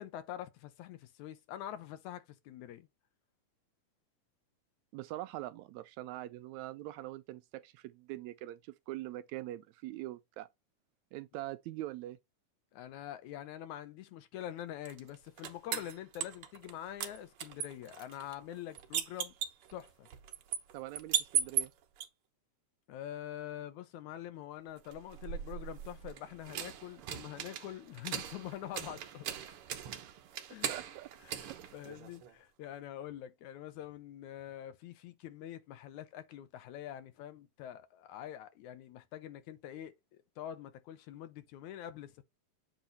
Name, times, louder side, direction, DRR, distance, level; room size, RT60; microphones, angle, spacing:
voice 1, 0.0-2.9 12.7-19.3 19.7-20.1 22.9-29.3 30.5-30.7 31.2-42.2, left 11 dB, 75° left, 2.1 m, -45 dB
voice 2, 4.9-10.5 11.1-12.2 20.7-21.7 30.0-30.1 30.7-31.1, right 15 dB, 80° right, 1.7 m, -43 dB
sound 1, 14.9-16.7 17.0-22.1 24.8-32.3, right 9 dB, 65° right, 1.4 m, -39 dB
8.0 x 3.0 x 4.0 m
omnidirectional pair, 3.7 m